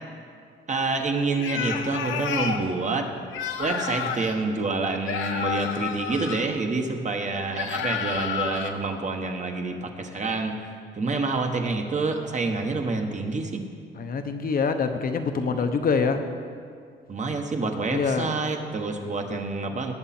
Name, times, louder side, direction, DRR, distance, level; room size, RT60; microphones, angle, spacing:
voice 1, 0.7-3.1 3.6-13.6 15.4-15.6 17.1-19.9, right 3 dB, 35° right, 4 dB, 1.3 m, -27 dB
sound 1, 1.3-2.6 3.3-4.3 5.0-6.5 7.5-8.7, left 7 dB, 75° left, 0.9 m, -30 dB
voice 2, 14.0-16.2 17.9-18.4, left 5 dB, 45° left, 7 dB, 0.9 m, -25 dB
19.0 x 7.0 x 4.4 m, 2.2 s
cardioid pair, 90°, 20 cm